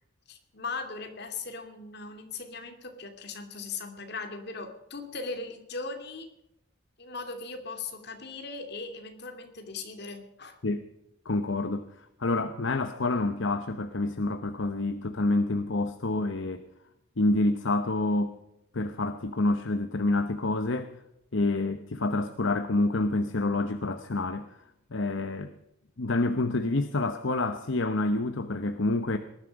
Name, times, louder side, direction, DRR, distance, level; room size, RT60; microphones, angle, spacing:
voice 1, 0.3-6.3 7.0-10.6, left 4 dB, 55° left, 5 dB, 2.4 m, -39 dB
voice 2, 11.2-16.6 17.2-18.4 18.7-20.9 21.3-24.6 24.9-25.5 26.0-29.2, left 2 dB, 70° left, 9 dB, 0.9 m, -28 dB
19.5 x 11.5 x 5.3 m, 0.83 s
head